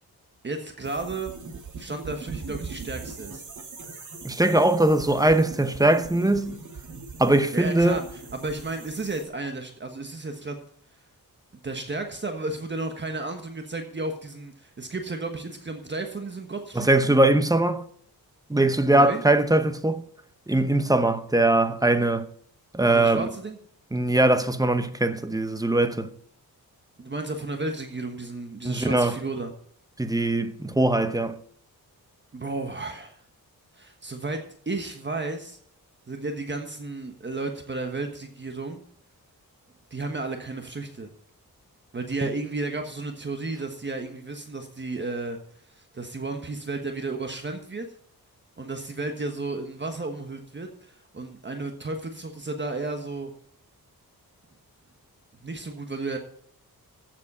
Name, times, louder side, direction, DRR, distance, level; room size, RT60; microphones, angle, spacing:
voice 1, 0.4-1.3 1.8-3.4 7.5-8.0 8.3-10.6 11.5-17.2 18.9-19.2 22.9-23.6 27.0-29.5 32.3-33.2 33.7-35.6 36.1-38.8 39.9-41.1 41.9-45.4 45.7-47.9 48.6-53.3 55.4-56.2, right 3 dB, 30° right, 1.3 m, -33 dB
sound 1, 0.8-9.2, right 4 dB, 55° right, 2.7 m, -41 dB
voice 2, 4.2-6.6 7.2-8.0 16.8-17.8 18.5-20.0 20.5-22.2 22.7-23.3 23.9-26.1 28.6-29.2 30.0-31.4, right 2 dB, 10° right, 0.8 m, -21 dB
15.0 x 7.5 x 5.5 m
wide cardioid pair, 145°, 37 cm